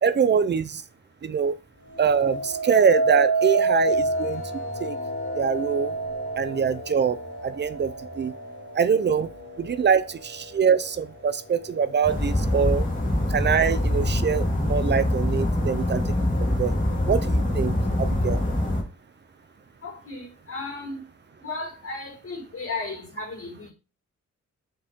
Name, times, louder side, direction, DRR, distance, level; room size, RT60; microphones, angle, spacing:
voice 1, 0.0-0.8 1.2-1.6 2.0-4.4 4.8-5.0 5.3-5.9 6.4-7.2 7.4-8.3 8.7-9.3 9.6-12.8 13.3-16.1 16.4-16.8 17.1-18.4, right 7 dB, 40° right, 0.5 m, -24 dB
sound 1, 1.9-11.1 11.6-12.1, right 3 dB, 75° left, 2.7 m, -29 dB
sound 2, 12.0-18.8, left 1 dB, 25° left, 2.3 m, -24 dB
voice 2, 19.8-21.0 21.4-23.7, left 3 dB, 50° left, 4.6 m, -35 dB
7.0 x 5.3 x 3.6 m
wide cardioid pair, 180°, 29 cm